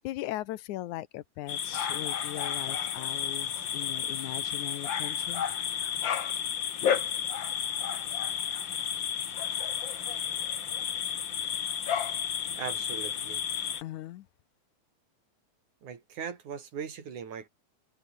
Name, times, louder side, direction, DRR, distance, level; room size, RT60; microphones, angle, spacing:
voice 1, 0.0-5.4 13.8-14.3, left 15 dB, 80° left, 2.3 m, -39 dB
sound 1, 1.5-13.8, left 8 dB, 45° left, 1.8 m, -32 dB
voice 2, 12.6-13.4 15.8-17.5, right 7 dB, 80° right, 4.5 m, -39 dB
omnidirectional pair, 3.4 m